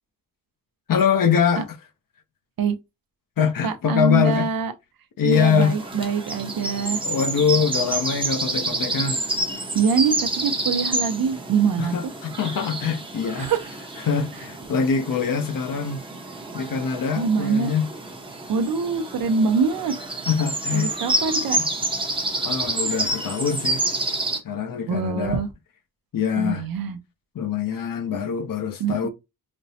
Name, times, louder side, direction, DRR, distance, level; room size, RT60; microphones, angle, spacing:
voice 1, 0.9-1.7 3.4-4.5 5.2-5.8 7.0-9.2 11.8-13.5 14.0-16.0 16.5-17.9 20.3-20.9 21.6-21.7 22.4-23.8 24.4-25.4 26.1-26.7 27.3-29.1, left 6 dB, 70° left, 0.7 m, -23 dB
voice 2, 3.6-4.7 5.2-7.0 9.7-12.0 13.4-13.6 17.1-17.7 18.5-20.0 20.7-21.6 24.9-25.5 26.4-27.0 28.8-29.1, right 5 dB, 85° right, 0.6 m, -24 dB
sound 1, 5.3-24.4, right 2 dB, 15° right, 0.7 m, -29 dB
5.1 x 2.0 x 2.7 m
wide cardioid pair, 115°, 34 cm